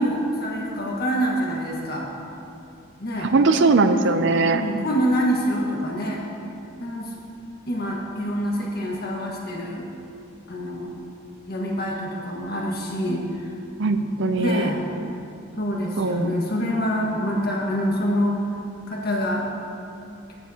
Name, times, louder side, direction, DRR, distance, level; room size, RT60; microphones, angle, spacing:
voice 1, 0.0-2.1 3.0-3.3 4.0-4.1 4.5-6.2 6.8-7.1 7.7-9.9 10.5-10.9 11.5-13.5 14.3-14.8 15.6-18.4 18.9-19.4, equal, 50° left, -2 dB, 1.5 m, -26 dB
voice 2, 3.2-4.6 13.8-14.7 16.0-16.3, right 3 dB, 60° right, 9 dB, 0.5 m, -20 dB
14.0 x 9.1 x 2.9 m, 2.7 s
head